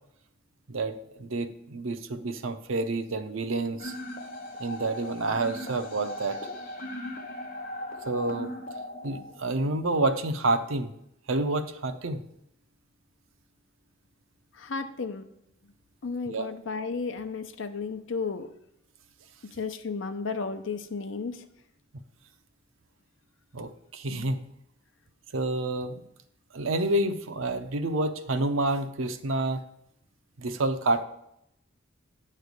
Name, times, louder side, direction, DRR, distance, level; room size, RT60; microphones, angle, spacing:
voice 1, 0.7-3.9 4.6-6.4 8.1-8.5 9.0-10.9 11.3-12.2 16.3-16.5 23.5-24.4 25.3-26.0 26.5-29.6 30.4-31.0, right 2 dB, 85° right, 9 dB, 0.7 m, -28 dB
sound 1, 3.8-9.8, left 1 dB, 45° left, 1.0 m, -38 dB
voice 2, 14.6-15.2 16.0-18.5 19.6-21.4, left 4 dB, 70° left, 8 dB, 0.7 m, -33 dB
9.2 x 3.3 x 6.6 m, 0.78 s
head